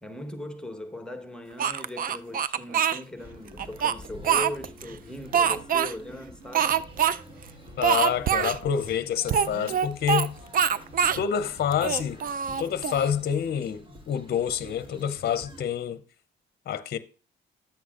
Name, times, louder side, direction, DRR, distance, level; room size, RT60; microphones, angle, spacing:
voice 1, 0.0-6.8, left 1 dB, 5° left, 1.1 m, -39 dB
Speech, 1.6-3.0 3.6-4.8 5.3-5.9 6.5-7.2 7.4-7.5 7.8-8.6 9.3-10.3 10.5-11.2 11.7-13.1, right 8 dB, 45° right, 0.5 m, -24 dB
sound 1, 3.2-15.7, left 1 dB, 25° right, 1.4 m, -48 dB
sound 2, 6.4-12.9, right 3 dB, 80° right, 4.2 m, -55 dB
voice 2, 7.8-10.4 11.2-12.2 12.6-16.0 16.7-17.0, left 8 dB, 55° left, 0.6 m, -27 dB
10.5 x 7.9 x 2.4 m
cardioid pair, 90°, 20 cm